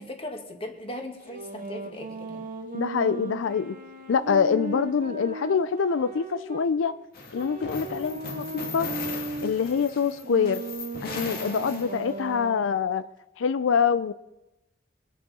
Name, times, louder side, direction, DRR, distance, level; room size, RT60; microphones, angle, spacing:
voice 1, 0.0-2.5, left 1 dB, 30° left, 3 dB, 1.9 m, -38 dB
sound 1, 1.2-6.7 7.3-12.7, right 3 dB, 45° right, 1.8 m, -37 dB
voice 2, 2.7-3.7 4.1-6.9 7.3-8.9 9.4-10.6 11.0-13.0 13.4-14.1, left 6 dB, 90° left, 13 dB, 0.4 m, -25 dB
sound 2, 7.1-12.3, left 4 dB, 55° left, 1.8 m, -38 dB
23.5 x 8.3 x 4.2 m, 0.95 s
head